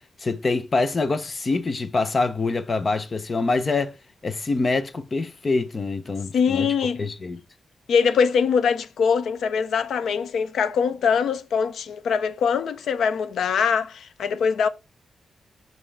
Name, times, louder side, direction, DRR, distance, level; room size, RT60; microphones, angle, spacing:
voice 1, 0.2-4.0 4.2-6.7 7.0-7.4, left 3 dB, 30° left, 0.6 m, -25 dB
voice 2, 6.3-7.0 7.9-14.7, left 6 dB, 85° left, 0.7 m, -22 dB
5.6 x 5.5 x 3.3 m
wide cardioid pair, 175°, 0 cm